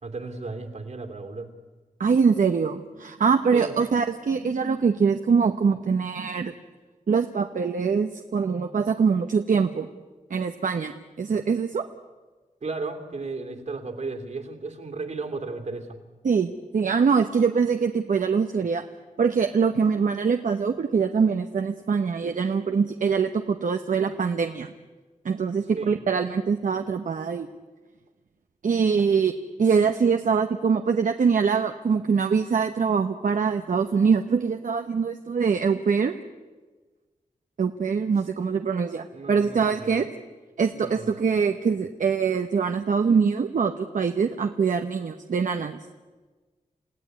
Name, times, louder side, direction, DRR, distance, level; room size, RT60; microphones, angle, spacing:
voice 1, 0.0-1.5 3.5-3.7 12.6-16.0 25.7-25.9 39.1-40.1 40.7-41.1, right 3 dB, 60° right, 5 dB, 3.1 m, -34 dB
voice 2, 2.0-6.5 7.1-9.9 10.3-10.9 11.2-11.8 16.2-18.8 19.2-24.7 25.2-27.5 28.6-29.3 29.6-36.2 37.6-40.1 40.6-45.8, right 5 dB, 75° right, 7 dB, 1.0 m, -23 dB
28.5 x 16.5 x 9.6 m, 1.3 s
wide cardioid pair, 120°, 13 cm